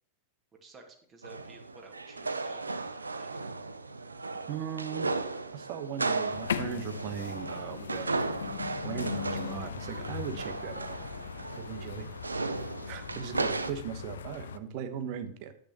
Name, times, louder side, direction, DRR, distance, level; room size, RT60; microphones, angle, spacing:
voice 1, 0.6-3.6 4.5-4.8, right 4 dB, 25° right, 2 dB, 2.0 m, -54 dB
sound 1, 1.2-13.7, right 3 dB, 80° right, 0.5 m, -35 dB
voice 2, 4.5-5.1 5.5-8.1 8.8-11.0 11.5-12.1 12.9-15.5, right 8 dB, 45° right, 9 dB, 1.1 m, -38 dB
sound 2, 6.3-14.6, left 8 dB, 65° left, 0.5 m, -39 dB
10.0 x 8.5 x 3.0 m, 0.63 s
figure-of-eight pair, 90°, 0 cm